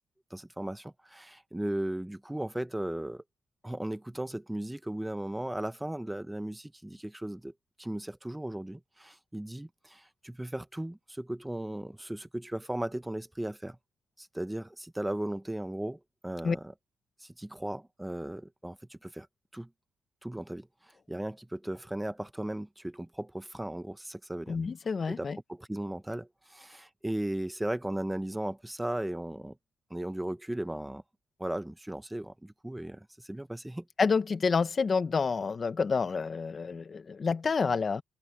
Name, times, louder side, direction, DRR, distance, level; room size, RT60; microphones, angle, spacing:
voice 1, 0.3-3.2 3.6-7.5 7.8-13.8 14.2-16.7 17.2-19.3 19.5-19.7 20.2-24.6 25.1-29.6 29.9-31.0 31.4-33.9, right 1 dB, 10° right, 1.1 m, -36 dB
voice 2, 24.5-25.4 34.0-38.0, left 5 dB, 40° left, 1.4 m, -28 dB
cardioid pair, 90°, 0 cm